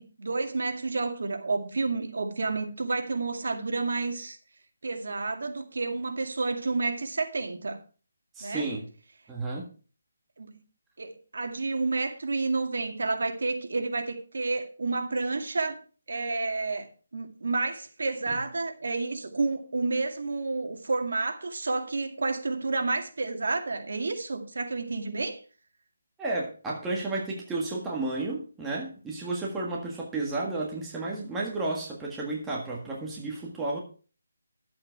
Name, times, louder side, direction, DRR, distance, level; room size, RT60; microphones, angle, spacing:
voice 1, 0.0-4.4 4.8-7.8 8.4-8.7 10.4-10.6 11.0-15.8 16.1-16.9 17.1-25.4, right 3 dB, 70° right, 2.2 m, -30 dB
voice 2, 8.3-8.8 9.3-9.7 18.3-18.4 26.2-33.8, right 2 dB, 5° right, 1.7 m, -32 dB
11.5 x 7.8 x 4.7 m
hypercardioid pair, 170°, 0 cm